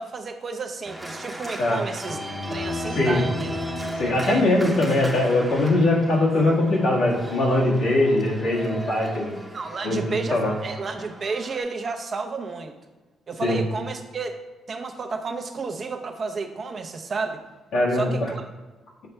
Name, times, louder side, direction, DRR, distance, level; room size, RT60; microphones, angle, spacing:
voice 1, 0.0-2.2 2.5-3.5 4.2-4.4 9.5-12.7 13.3-14.4 14.7-17.4 17.9-18.5, right 4 dB, 45° right, 5 dB, 0.7 m, -31 dB
Organ, 0.8-11.6, equal, 5° right, 0.9 m, -35 dB
voice 2, 4.0-9.4 9.8-10.5 13.4-13.6 17.7-18.3, left 2 dB, 80° left, -4 dB, 1.7 m, -21 dB
6.9 x 4.3 x 3.3 m, 1.2 s
cardioid pair, 90°, 0 cm